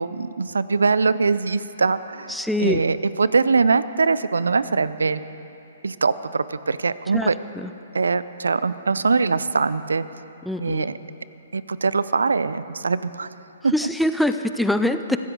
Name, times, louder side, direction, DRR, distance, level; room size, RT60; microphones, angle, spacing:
voice 1, 0.0-5.2 5.8-7.3 7.9-10.0 10.6-11.0 11.5-13.3 13.6-13.7, right 4 dB, 70° right, 15 dB, 0.6 m, -22 dB
voice 2, 2.3-2.8 7.1-7.3 7.6-7.7 10.4-10.9 13.7-15.2, left 1 dB, ahead, 9 dB, 0.6 m, -23 dB
23.5 x 15.5 x 3.9 m, 2.9 s
figure-of-eight pair, 125°, 0 cm